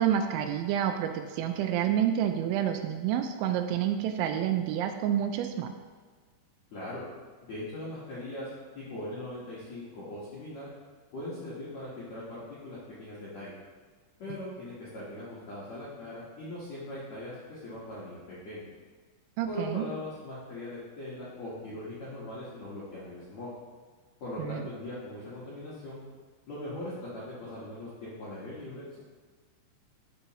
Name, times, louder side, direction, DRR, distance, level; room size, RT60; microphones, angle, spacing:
voice 1, 0.0-5.7 19.4-19.8 24.4-24.7, right 10 dB, 85° right, 6 dB, 2.9 m, -28 dB
voice 2, 6.7-7.0 7.4-8.5 8.7-10.7 11.1-13.5 14.2-18.7 19.4-23.5 24.2-26.0 26.5-29.0, left 1 dB, 70° left, -9 dB, 1.6 m, -40 dB
12.0 x 4.6 x 3.0 m, 1.5 s
omnidirectional pair, 5.5 m